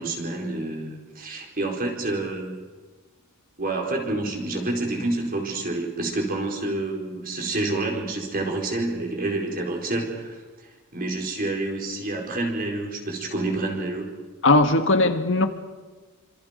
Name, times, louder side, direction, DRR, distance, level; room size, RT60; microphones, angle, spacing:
voice 1, 0.0-2.6 3.6-10.4 10.9-14.1, right 2 dB, 40° right, 4.6 m, -28 dB
voice 2, 14.4-15.5, left 2 dB, 60° left, 1.6 m, -18 dB
28.0 x 26.0 x 5.2 m
head